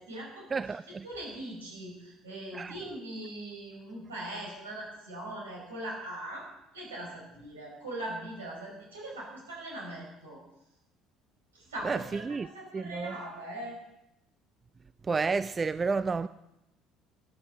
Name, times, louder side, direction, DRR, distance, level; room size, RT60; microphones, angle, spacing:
voice 1, 0.0-0.5 1.0-6.5 6.7-10.4 11.5-13.8, right 1 dB, 75° right, 4.8 m, -40 dB
voice 2, 0.5-1.0 2.5-2.7 11.8-12.5 12.7-13.2 15.0-16.3, right 4 dB, 25° right, 0.4 m, -30 dB
12.5 x 10.0 x 6.7 m
figure-of-eight pair, 55°, 0 cm